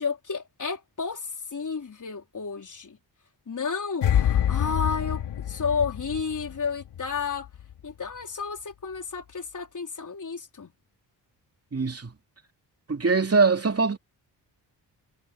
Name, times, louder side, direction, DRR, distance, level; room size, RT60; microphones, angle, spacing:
voice 1, 0.0-3.0 3.5-7.5 7.8-10.7, left 5 dB, 45° left, 4.0 m, -32 dB
sound 1, 4.0-7.2 7.5-7.7, left 10 dB, 85° left, 3.9 m, -26 dB
voice 2, 11.7-12.1 12.9-14.0, right 4 dB, 35° right, 2.9 m, -22 dB
cardioid pair, 55°, 41 cm